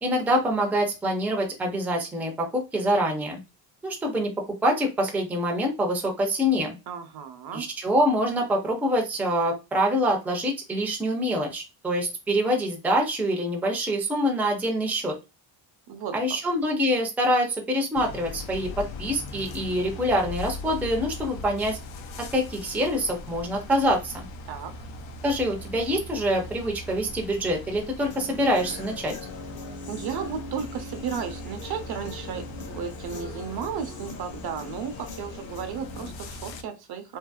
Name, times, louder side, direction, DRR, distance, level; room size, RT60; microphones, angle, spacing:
voice 1, 0.0-3.4 3.8-4.3 4.6-6.8 7.5-15.2 16.1-21.8 22.2-24.3 25.2-29.1, equal, 5° right, 0.4 m, -25 dB
voice 2, 6.9-7.7 15.9-16.2 24.4-24.8 29.9-37.2, right 7 dB, 60° right, 0.7 m, -34 dB
sound 1, 18.0-36.6, left 2 dB, 85° left, 0.6 m, -40 dB
Human voice / Guitar, 28.1-36.1, left 3 dB, 50° left, 0.9 m, -41 dB
2.8 x 2.6 x 2.3 m
cardioid pair, 150°, 44 cm